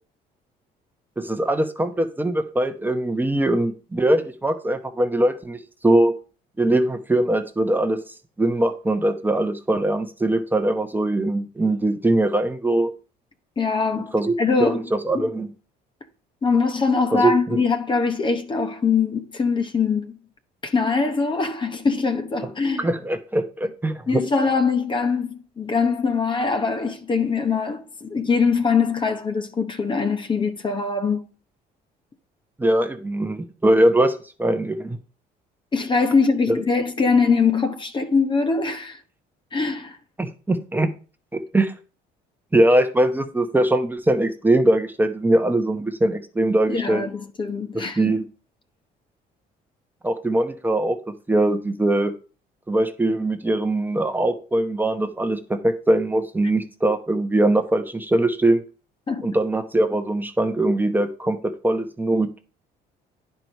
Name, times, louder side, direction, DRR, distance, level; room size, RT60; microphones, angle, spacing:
voice 1, 1.2-6.1 6.6-8.0 8.4-12.9 14.1-14.3 14.6-15.5 17.1-17.6 22.8-24.2 32.6-35.0 36.5-36.6 40.2-40.9 41.3-41.7 42.5-47.0 47.7-48.2 50.0-51.0 51.3-52.1 52.7-58.6 59.2-62.4, right 1 dB, 10° right, 0.9 m, -21 dB
voice 2, 13.6-14.8 15.1-15.3 16.4-20.2 20.6-22.9 24.1-31.2 35.7-39.0 39.5-40.0 46.7-48.2 59.1-59.3, left 4 dB, 30° left, 1.0 m, -22 dB
9.8 x 4.6 x 5.4 m
cardioid pair, 110°, 17 cm